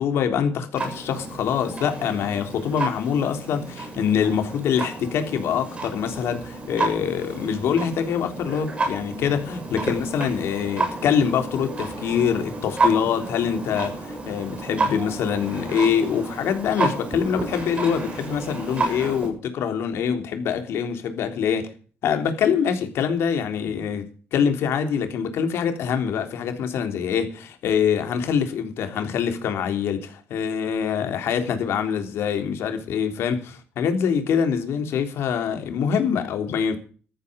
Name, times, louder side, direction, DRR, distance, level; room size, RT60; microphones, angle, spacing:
voice 1, 0.0-21.7 22.0-27.3 27.6-36.8, left 7 dB, 80° left, 3.5 m, -24 dB
Clock, 0.7-19.3, right 2 dB, 25° right, 7.0 m, -31 dB
14.5 x 14.0 x 5.3 m
cardioid pair, 155°, 4 cm